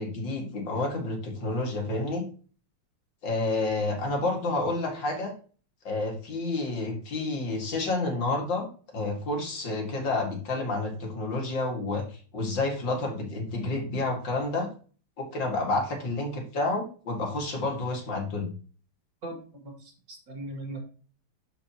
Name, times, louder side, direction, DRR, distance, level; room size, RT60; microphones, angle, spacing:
voice 1, 0.0-2.2 3.2-5.3 5.8-8.7 8.9-14.7 15.2-18.5, left 2 dB, 80° left, 1 dB, 2.7 m, -29 dB
voice 2, 19.2-20.8, right 1 dB, 75° right, 0 dB, 3.1 m, -39 dB
12.5 x 4.7 x 2.9 m, 0.40 s
omnidirectional pair, 2.0 m